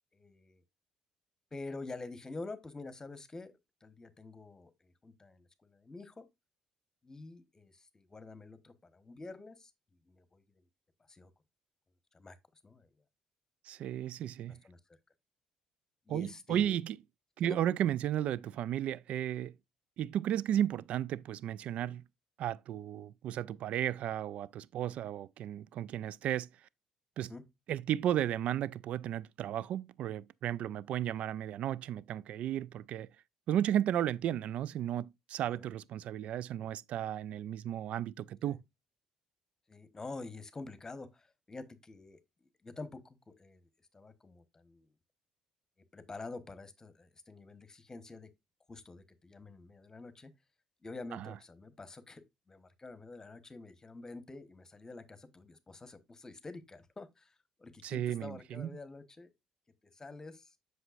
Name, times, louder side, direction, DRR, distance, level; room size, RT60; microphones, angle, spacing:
voice 1, 0.1-0.6 1.5-3.5 3.8-6.3 7.0-9.7 10.1-10.4 11.1-11.3 12.1-12.4 12.6-12.9 14.6-14.8 16.1-16.8 17.4-17.6 27.3-27.4 35.4-35.6 38.5-38.6 39.7-42.2 42.6-43.6 43.9-44.9 45.9-48.3 48.7-50.3 50.8-59.3 59.8-60.6, left 3 dB, 25° left, 1.2 m, -47 dB
voice 2, 13.7-14.6 16.1-17.0 17.4-19.5 20.0-22.0 22.4-26.5 27.2-27.3 27.7-33.1 33.5-38.6 51.1-51.3 57.8-58.7, right 11 dB, 60° right, 0.3 m, -34 dB
7.9 x 6.4 x 2.5 m
hypercardioid pair, 60°, 2 cm